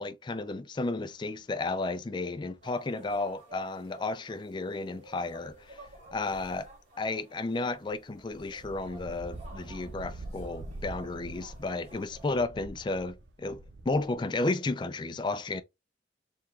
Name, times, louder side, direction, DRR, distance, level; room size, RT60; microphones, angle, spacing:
voice 1, 0.0-6.7 7.0-15.6, left 3 dB, 25° left, 0.3 m, -33 dB
sound 1, 1.5-1.6 3.1-3.3 5.3-7.1 7.7-14.1, right 2 dB, 75° right, 0.6 m, -46 dB
sound 2, 2.6-12.3, right 1 dB, 40° right, 2.6 m, -53 dB
4.8 x 3.5 x 2.3 m
head